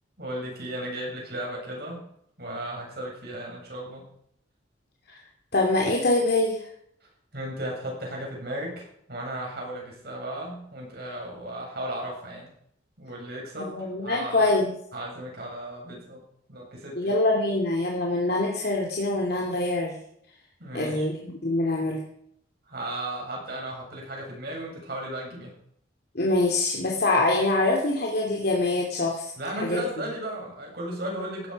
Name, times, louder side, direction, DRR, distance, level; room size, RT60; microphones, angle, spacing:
voice 1, 0.2-2.0 2.4-4.0 7.3-12.5 13.0-14.5 14.9-16.2 16.5-17.2 20.6-21.1 22.7-25.5 29.4-31.5, right 1 dB, 55° right, -1 dB, 7.9 m, -35 dB
voice 2, 5.5-6.6 13.6-14.7 17.0-20.0 20.7-22.0 26.1-29.3 29.6-29.8, left 2 dB, 55° left, -1 dB, 2.7 m, -24 dB
16.0 x 13.5 x 5.3 m, 0.70 s
head